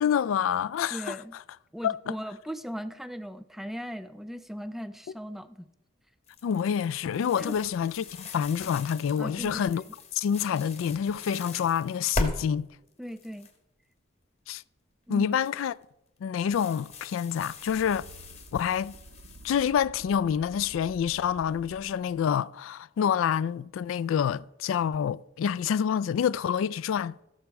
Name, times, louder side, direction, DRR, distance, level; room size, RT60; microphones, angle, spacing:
voice 1, 0.0-1.2 1.8-2.2 6.4-9.8 10.1-12.7 14.5-14.6 15.1-15.8 16.2-18.1 18.5-18.9 19.4-27.2, left 8 dB, 80° left, 0.3 m, -27 dB
voice 2, 0.9-1.3 1.7-5.7 7.4-7.6 9.2-9.6 13.0-13.5 15.1-15.3, equal, ahead, 0.4 m, -38 dB
sound 1, 6.3-12.3 12.9-13.5 15.3-15.7 16.4-19.6, left 2 dB, 35° left, 1.3 m, -39 dB
sound 2, 17.5-22.4, right 2 dB, 65° right, 0.7 m, -51 dB
14.5 x 6.2 x 4.7 m
head